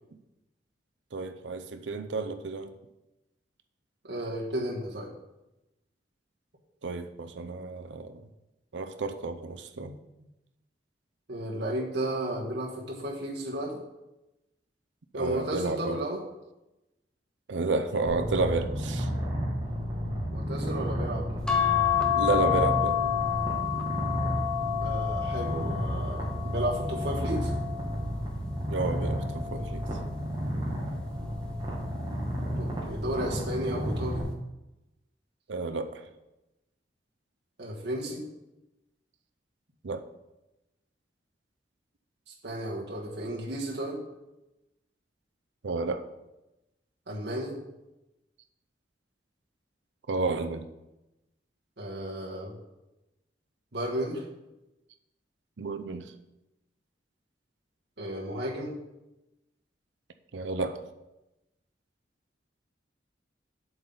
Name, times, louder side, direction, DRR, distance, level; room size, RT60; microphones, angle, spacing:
voice 1, 1.1-2.7 6.8-8.2 8.7-9.9 15.1-16.0 17.5-19.1 22.2-23.0 28.7-29.8 35.5-36.0 39.8-40.0 45.6-46.0 50.1-50.7 55.6-56.1 60.3-60.8, right 3 dB, 85° right, 7 dB, 0.6 m, -31 dB
voice 2, 4.0-5.1 9.8-9.9 11.3-13.8 15.1-16.2 20.3-21.3 24.8-27.5 32.5-34.2 37.6-38.2 42.4-44.0 47.1-47.6 51.8-52.6 53.7-54.2 58.0-58.7, right 1 dB, 70° right, -3 dB, 1.5 m, -33 dB
Purr, 18.1-34.2, equal, 25° right, 2.0 m, -32 dB
sound 1, 21.5-28.1 28.7-30.1 31.4-31.8 32.1-32.2, left 10 dB, 5° left, 0.8 m, -30 dB
7.8 x 7.2 x 3.9 m, 0.97 s
head